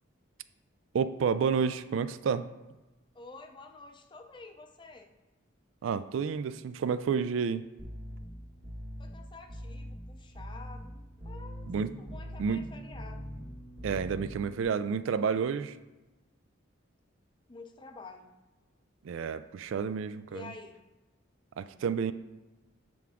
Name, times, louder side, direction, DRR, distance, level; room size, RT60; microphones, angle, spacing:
voice 1, 0.9-2.5 5.8-7.7 11.7-11.9 12.4-12.6 13.8-15.8 19.0-20.5 21.6-22.1, right 6 dB, 75° right, 13 dB, 0.3 m, -30 dB
voice 2, 3.1-5.1 9.0-11.7 12.0-13.3 17.5-18.4 20.3-20.9, left 3 dB, 25° left, 6 dB, 0.5 m, -49 dB
sound 1, 7.8-14.6, equal, 55° right, 1.6 m, -43 dB
8.0 x 4.6 x 3.6 m, 1.1 s
head